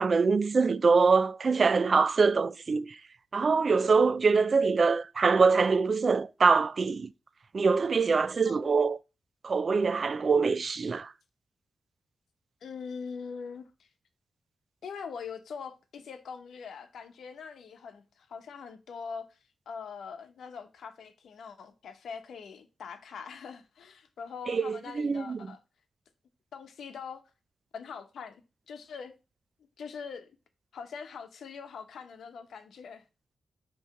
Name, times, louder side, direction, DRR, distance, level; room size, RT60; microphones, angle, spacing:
voice 1, 0.0-3.0 3.3-7.1 7.5-9.0 9.4-11.1 24.5-25.4, right 4 dB, 40° right, 0.3 m, -24 dB
voice 2, 12.6-13.9 14.8-19.4 19.7-25.6 26.5-27.2 27.7-29.1 29.8-30.3 30.7-33.0, left 6 dB, 80° left, 0.9 m, -42 dB
5.9 x 3.1 x 5.6 m
wide cardioid pair, 155°, 0 cm